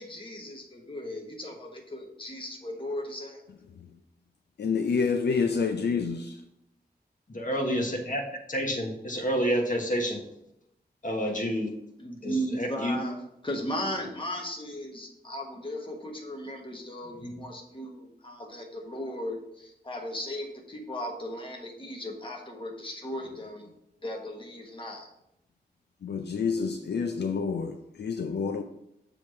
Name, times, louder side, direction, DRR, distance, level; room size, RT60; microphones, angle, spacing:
voice 1, 0.0-3.4 12.0-23.7 24.0-25.1, equal, 30° left, 1.3 m, -36 dB
voice 2, 4.6-6.4 26.0-28.6, left 5 dB, 75° left, 0.4 m, -28 dB
voice 3, 7.3-8.2 8.5-10.2 11.0-11.7 12.2-13.0 17.2-17.3, equal, 50° left, 1.4 m, -29 dB
7.0 x 3.2 x 5.6 m
wide cardioid pair, 95°, 17 cm